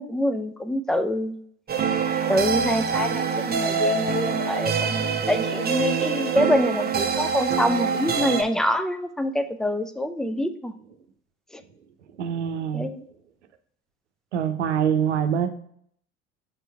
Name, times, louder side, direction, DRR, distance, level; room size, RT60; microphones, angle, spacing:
voice 1, 0.0-1.3 2.3-10.7 12.7-13.0, left 1 dB, ahead, 10 dB, 0.5 m, -26 dB
sound 1, 1.7-8.4, right 5 dB, 25° right, 0.9 m, -25 dB
voice 2, 12.2-12.9 14.3-15.5, right 8 dB, 80° right, 9 dB, 0.8 m, -24 dB
7.3 x 4.5 x 3.3 m, 0.65 s
figure-of-eight pair, 65°, 34 cm